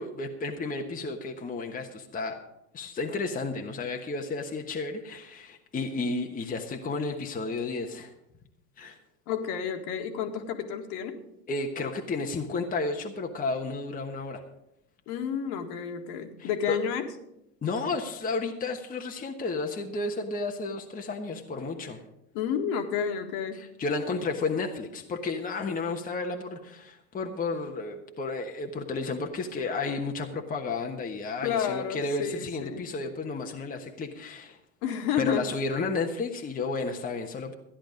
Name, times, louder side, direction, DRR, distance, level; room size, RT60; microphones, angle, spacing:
voice 1, 0.0-2.4 2.7-8.1 8.8-9.0 11.5-14.4 16.4-16.8 17.6-22.0 23.5-34.6 35.2-37.6, left 3 dB, 20° left, 3 dB, 1.2 m, -32 dB
voice 2, 9.3-11.2 15.1-17.1 22.3-23.6 31.4-32.8 34.8-35.5, left 7 dB, 55° left, 5 dB, 1.9 m, -30 dB
13.5 x 10.0 x 5.2 m, 0.84 s
hypercardioid pair, 100°, 47 cm